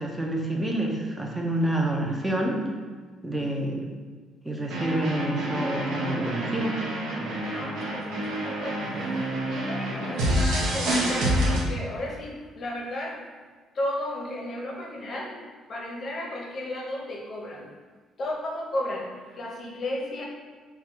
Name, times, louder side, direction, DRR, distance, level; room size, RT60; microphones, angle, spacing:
voice 1, 0.0-2.6 3.2-3.8 4.4-6.8, right 1 dB, 10° right, 0 dB, 0.5 m, -28 dB
sound 1, 4.7-11.6, right 1 dB, 75° right, 0.9 m, -28 dB
voice 2, 7.5-13.2 13.7-15.4 15.7-17.7 18.2-20.2, left 1 dB, 35° left, -1 dB, 0.7 m, -34 dB
3.6 x 2.2 x 4.4 m, 1.5 s
cardioid pair, 165°, 0 cm